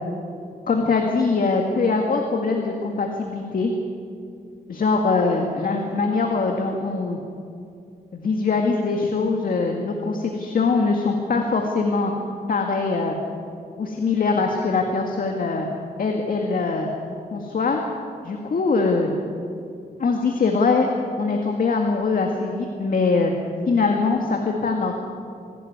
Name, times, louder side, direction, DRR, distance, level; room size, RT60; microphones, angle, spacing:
voice 1, 0.7-3.7 4.7-7.2 8.1-12.1 12.5-13.2 13.8-15.7 16.0-16.9 17.3-17.8 18.2-19.1 20.0-20.9 21.2-23.3 23.7-25.0, left 4 dB, 60° left, 2 dB, 2.0 m, -22 dB
25.5 x 12.0 x 9.4 m, 2.5 s
cardioid pair, 90°, 16 cm